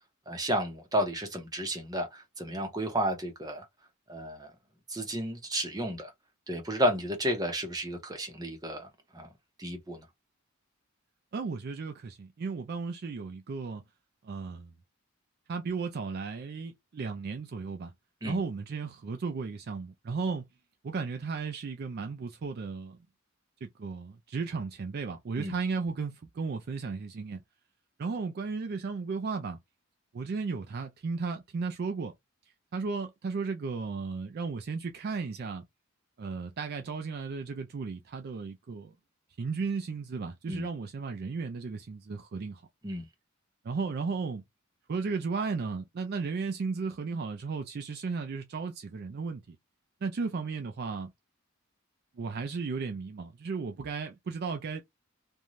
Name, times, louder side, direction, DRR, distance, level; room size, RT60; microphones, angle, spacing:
voice 1, 0.3-3.6 4.1-4.5 4.9-6.1 6.5-8.9 9.1-9.3 9.6-10.0 18.2-18.4 25.4-25.5 40.5-40.6 42.8-43.1, equal, 20° right, 0.8 m, -32 dB
voice 2, 11.3-13.8 14.2-14.7 15.5-17.9 18.2-20.5 20.8-23.0 23.6-27.4 28.0-29.6 30.1-32.1 32.7-35.6 36.2-38.9 39.4-42.6 43.6-44.4 44.9-49.6 50.0-51.1 52.2-54.8, right 4 dB, 50° right, 0.4 m, -35 dB
2.5 x 2.2 x 3.0 m
head